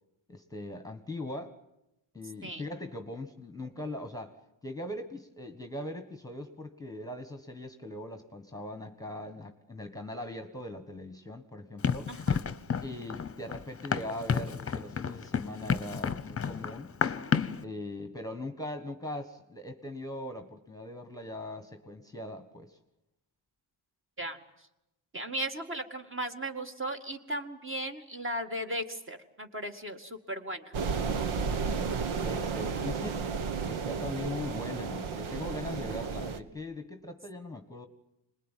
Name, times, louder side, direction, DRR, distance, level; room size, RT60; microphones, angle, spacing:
voice 1, 0.3-1.6 2.1-4.4 4.6-12.1 12.8-16.9 17.6-22.8 32.2-33.3 33.6-37.9, left 1 dB, 5° left, 7 dB, 1.5 m, -40 dB
Run, 11.8-17.6, left 6 dB, 30° left, 1.0 m, -31 dB
voice 2, 12.1-12.4 24.2-24.4 25.1-30.7, right 1 dB, 25° right, 5 dB, 2.1 m, -36 dB
sound 1, 30.7-36.4, right 5 dB, 80° right, 1.6 m, -32 dB
26.5 x 21.0 x 9.3 m, 0.91 s
cardioid pair, 120°, 48 cm